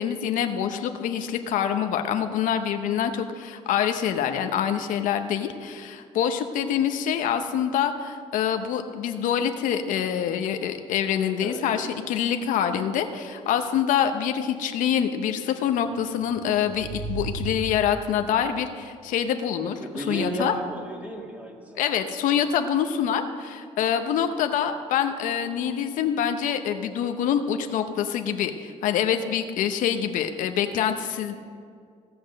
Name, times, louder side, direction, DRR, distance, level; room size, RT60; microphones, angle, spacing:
voice 1, 0.0-20.5 21.8-31.3, left 8 dB, 75° left, 7 dB, 0.8 m, -26 dB
sound 1, 16.0-18.3, right 3 dB, 90° right, 3.6 m, -35 dB
voice 2, 19.8-22.0, right 1 dB, 10° right, 1 dB, 2.0 m, -33 dB
16.5 x 6.0 x 6.5 m, 2.2 s
cardioid pair, 100°, 14 cm